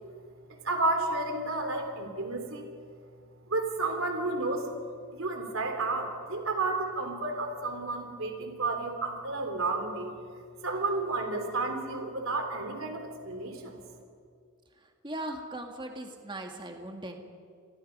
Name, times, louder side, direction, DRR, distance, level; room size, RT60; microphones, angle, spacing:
voice 1, 0.6-2.7 3.5-4.7 5.1-10.2 10.6-13.8, right 3 dB, 60° right, 4 dB, 3.6 m, -31 dB
voice 2, 15.0-17.2, right 1 dB, 20° right, 3 dB, 1.9 m, -39 dB
29.0 x 21.5 x 5.5 m, 2.1 s
head